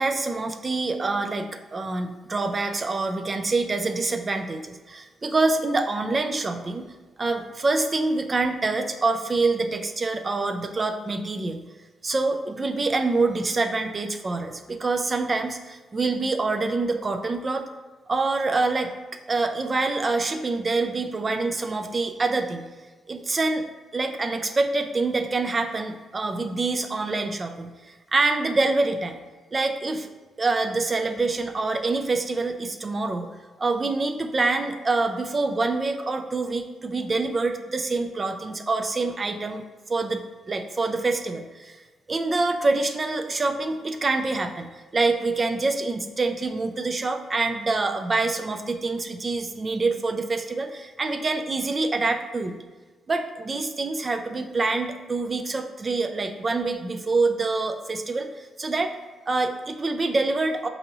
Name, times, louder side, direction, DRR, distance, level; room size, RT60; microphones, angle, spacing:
voice 1, 0.0-6.8 7.2-11.6 12.0-17.6 18.1-18.9 19.3-22.7 23.1-23.7 23.9-29.2 29.5-30.1 30.4-33.3 33.6-39.6 39.9-41.8 42.1-52.6 53.1-58.9 59.3-60.7, right 3 dB, 40° right, 6 dB, 0.4 m, -26 dB
5.2 x 2.7 x 2.8 m, 1.3 s
supercardioid pair, 55°, 0 cm